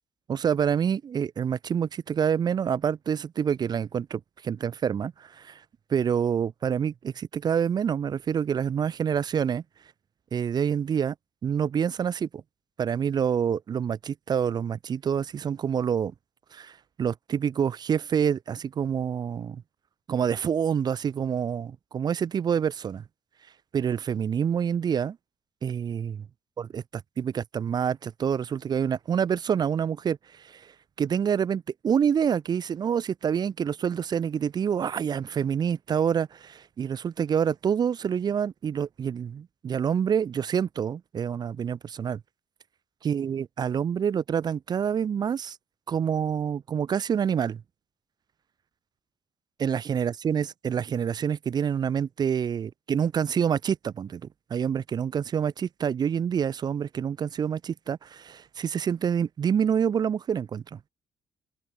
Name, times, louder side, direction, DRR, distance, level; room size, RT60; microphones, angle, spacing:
voice 1, 0.3-5.6 5.9-9.6 10.3-11.1 11.4-12.4 12.8-16.1 16.5-19.6 20.1-23.0 23.7-25.2 25.6-26.3 26.6-30.2 30.4-30.6 31.0-42.2 43.0-45.6 45.9-47.6 49.6-54.2 54.5-60.8, right 7 dB, 35° right, 0.4 m, -27 dB
open air
cardioid pair, 150°, 12 cm